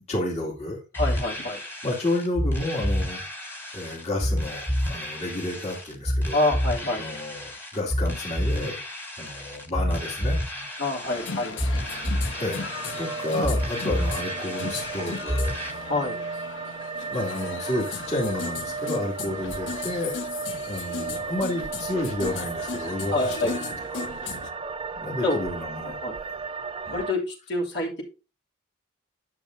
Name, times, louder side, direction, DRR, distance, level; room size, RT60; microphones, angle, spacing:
voice 1, 0.1-0.8 1.8-3.2 3.7-6.4 7.0-8.8 9.2-10.4 12.4-12.7 13.0-15.5 17.1-20.1 20.6-23.6 23.9-24.1 25.0-26.0 26.8-27.0, left 1 dB, 35° left, -4 dB, 2.4 m, -30 dB
sound 1, 0.9-15.7, equal, 10° left, 1.7 m, -29 dB
voice 2, 1.0-1.6 6.3-7.1 10.8-11.8 15.8-16.2 23.1-23.5 25.2-25.4 25.8-26.2 26.9-28.0, left 2 dB, 60° left, -2 dB, 2.9 m, -27 dB
sound 2, 9.8-27.1, right 5 dB, 25° right, 0.4 m, -35 dB
sound 3, 11.1-24.5, left 5 dB, 75° left, 0.9 m, -37 dB
10.5 x 7.5 x 2.7 m, 0.30 s
head